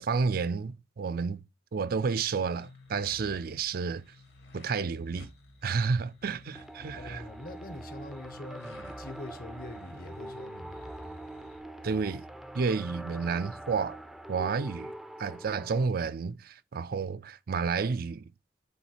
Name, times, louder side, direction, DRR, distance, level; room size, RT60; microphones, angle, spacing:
voice 1, 0.0-1.4 1.7-4.0 4.5-5.3 5.6-7.2 11.8-12.2 12.5-14.0 14.3-14.9 15.2-18.2, right 5 dB, 55° right, 0.4 m, -30 dB
sound 1, 2.1-11.6, left 1 dB, 70° left, 1.9 m, -53 dB
sound 2, 6.5-15.9, right 1 dB, ahead, 0.5 m, -44 dB
voice 2, 7.0-11.2, left 2 dB, 55° left, 1.0 m, -44 dB
7.2 x 4.0 x 4.2 m
head